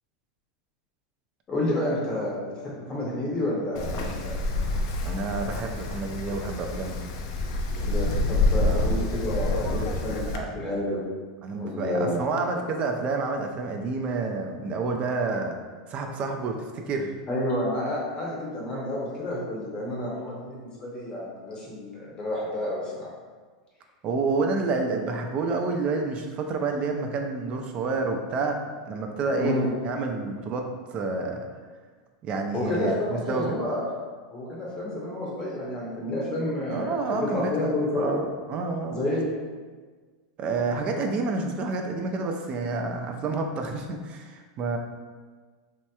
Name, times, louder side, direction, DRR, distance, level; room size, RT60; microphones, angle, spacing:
voice 1, 1.5-4.3 7.8-11.0 11.5-12.2 17.3-23.1 29.4-29.7 32.5-33.9 34.3-38.1 38.9-39.3, left 1 dB, 25° left, -5 dB, 0.7 m, -30 dB
Wind, 3.8-10.4, left 2 dB, 55° left, 0.4 m, -27 dB
voice 2, 5.0-7.0 8.6-9.1 10.3-10.5 11.4-15.6 15.9-17.1 24.0-29.6 29.8-31.5 32.2-33.6 36.7-39.0 40.4-44.8, right 3 dB, 30° right, 3 dB, 0.3 m, -29 dB
3.1 x 2.8 x 2.2 m, 1.5 s
supercardioid pair, 135°, 4 cm